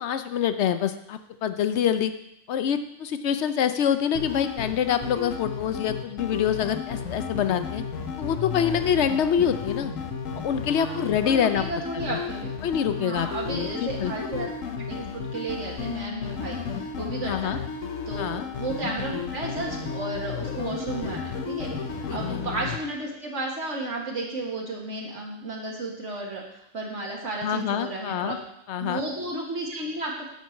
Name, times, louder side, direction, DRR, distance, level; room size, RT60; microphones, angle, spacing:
voice 1, 0.0-2.1 2.5-7.8 8.2-9.9 10.4-11.6 11.9-12.2 12.6-14.1 17.2-17.6 18.2-18.5 22.1-22.4 27.4-28.4 28.7-29.0, left 8 dB, 65° left, 10 dB, 0.9 m, -26 dB
sound 1, 4.1-22.8, left 5 dB, 90° left, 1.3 m, -33 dB
voice 2, 10.8-12.6 13.0-14.5 14.8-17.5 18.1-21.7 22.1-28.4 28.7-30.3, right 2 dB, 65° right, -2 dB, 1.8 m, -33 dB
9.0 x 4.7 x 7.1 m, 0.80 s
omnidirectional pair, 1.3 m